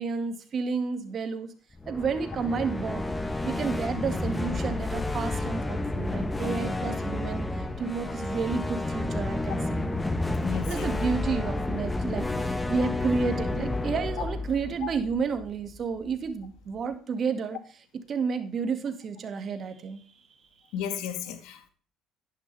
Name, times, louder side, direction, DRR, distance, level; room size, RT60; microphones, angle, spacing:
voice 1, 0.0-1.5 1.9-3.0 3.4-9.9 10.7-17.6 18.1-20.0, right 5 dB, 50° right, 2.0 m, -31 dB
sound 1, 1.7-15.8, left 2 dB, 15° left, 1.2 m, -30 dB
voice 2, 10.4-10.9 14.8-14.9 20.7-21.7, left 8 dB, 75° left, 1.8 m, -34 dB
11.0 x 9.8 x 3.4 m
supercardioid pair, 75°, 0 cm